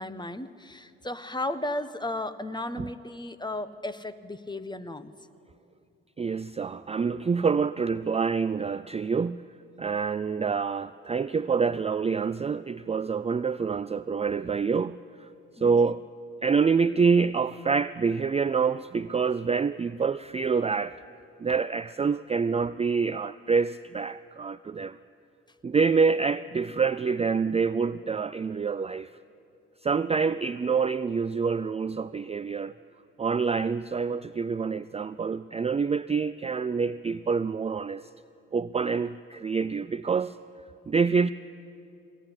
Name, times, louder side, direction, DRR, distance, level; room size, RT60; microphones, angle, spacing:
voice 1, 0.0-5.1 15.6-15.7, left 1 dB, 15° left, 12 dB, 1.3 m, -34 dB
voice 2, 6.2-9.4 9.8-15.3 15.6-16.0 16.4-21.0 21.4-25.0 25.6-29.1 29.8-32.7 33.2-38.1 38.5-40.4 40.9-41.3, right 5 dB, 20° right, 14 dB, 0.5 m, -26 dB
21.5 x 18.0 x 10.0 m, 2.6 s
hypercardioid pair, 60°, 33 cm